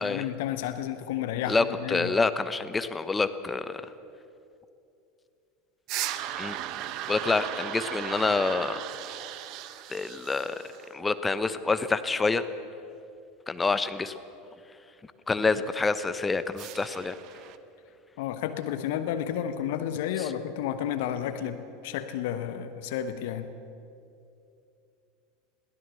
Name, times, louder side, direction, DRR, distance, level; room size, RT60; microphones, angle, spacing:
voice 1, 0.0-2.1 18.2-23.5, left 10 dB, 55° left, 10 dB, 1.1 m, -31 dB
voice 2, 1.5-3.8 6.4-6.6 7.1-8.8 9.9-10.5 10.9-12.4 13.5-14.1 15.3-17.2, left 3 dB, 15° left, 12 dB, 1.0 m, -27 dB
sound 1, 5.9-10.9 16.6-17.6, right 12 dB, 45° right, 1.0 m, -36 dB
21.5 x 17.0 x 7.0 m, 2.6 s
figure-of-eight pair, 80°, 0 cm